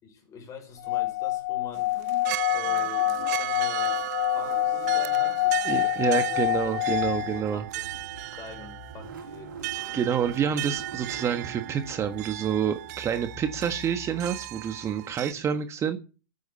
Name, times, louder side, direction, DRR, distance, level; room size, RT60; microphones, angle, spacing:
voice 1, 0.0-2.0 2.5-4.1 4.3-6.8 7.2-7.8 8.3-9.7, left 5 dB, 30° left, 6.2 m, -45 dB
Singing / Glass, 0.8-7.4, left 18 dB, 60° left, 0.8 m, -26 dB
sound 1, 1.8-15.3, right 18 dB, 50° right, 0.6 m, -36 dB
voice 2, 5.6-7.6 9.9-16.0, right 8 dB, 25° right, 1.4 m, -28 dB
Car / Engine starting, 6.2-15.0, right 3 dB, 80° right, 4.2 m, -44 dB
13.5 x 9.6 x 4.2 m
hypercardioid pair, 105°, 11 cm